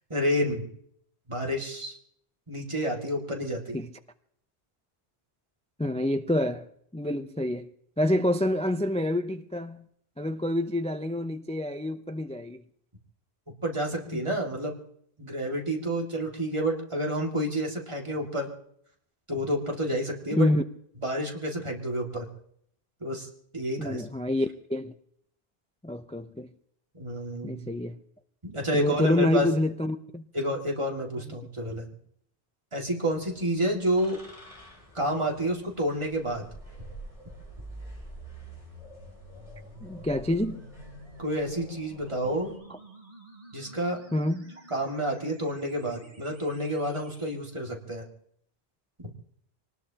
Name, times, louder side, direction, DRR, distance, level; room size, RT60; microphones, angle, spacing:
voice 1, 0.1-0.6 1.3-2.0 2.5-3.8 13.6-14.7 15.2-18.5 19.3-20.5 21.0-22.3 23.0-23.3 23.5-24.1 26.9-27.6 28.4-29.5 30.3-31.9 32.7-34.2 34.9-36.4 41.2-42.6 43.5-44.0 44.7-48.1 49.0-49.1, equal, 30° right, 2.3 m, -29 dB
voice 2, 5.8-6.7 6.9-7.7 8.0-9.8 10.2-12.6 14.1-14.2 20.3-20.6 23.8-24.9 25.8-26.5 27.4-28.0 28.7-30.2 39.8-40.6 44.1-44.5, left 1 dB, 10° left, 0.4 m, -27 dB
sound 1, 33.1-42.6, right 1 dB, 30° left, 4.7 m, -49 dB
sound 2, 37.3-47.3, right 2 dB, 50° right, 3.4 m, -49 dB
25.0 x 19.5 x 2.9 m
omnidirectional pair, 1.1 m